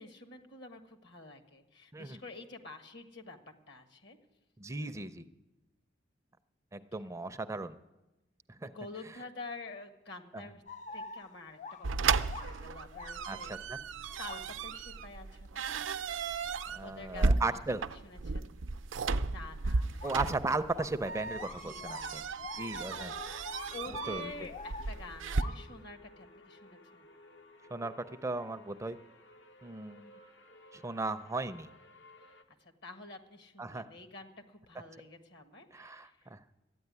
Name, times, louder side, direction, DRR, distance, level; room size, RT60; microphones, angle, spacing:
voice 1, 0.0-3.4 3.7-4.2 8.6-10.6 10.9-13.5 14.2-15.9 16.8-17.5 18.0-18.5 19.2-20.1 21.6-22.3 23.7-27.1 32.3-36.3, left 3 dB, 65° left, 6 dB, 1.5 m, -48 dB
voice 2, 4.6-5.3 6.7-7.8 8.6-8.7 10.3-10.4 13.3-13.8 16.7-17.8 20.0-22.2 22.6-23.1 24.1-24.3 27.7-27.9 28.2-29.0 29.6-30.1 30.7-31.7 33.6-33.9 35.7-36.4, right 3 dB, 15° right, 10 dB, 0.4 m, -36 dB
sound 1, 10.7-13.4 14.2-14.7 20.0-20.4 20.7-25.8, left 3 dB, 40° left, 0.4 m, -46 dB
sound 2, 11.8-25.4, right 4 dB, 85° right, 0.5 m, -34 dB
sound 3, 22.5-32.4, left 1 dB, 85° left, 1.3 m, -57 dB
13.0 x 9.3 x 9.5 m, 1.0 s
head